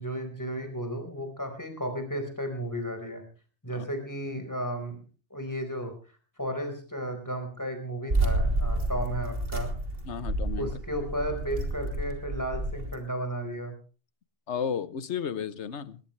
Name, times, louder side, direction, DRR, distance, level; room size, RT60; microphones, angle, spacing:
voice 1, 0.0-3.2 3.6-5.0 5.3-5.9 6.4-9.7 10.6-13.7, right 1 dB, 15° left, 6 dB, 4.6 m, -34 dB
sound 1, 8.1-12.9, right 2 dB, 55° right, 3.4 m, -30 dB
voice 2, 10.0-10.7 14.5-16.0, left 7 dB, 70° left, 15 dB, 1.3 m, -33 dB
20.0 x 19.5 x 3.3 m, 0.37 s
omnidirectional pair, 1.2 m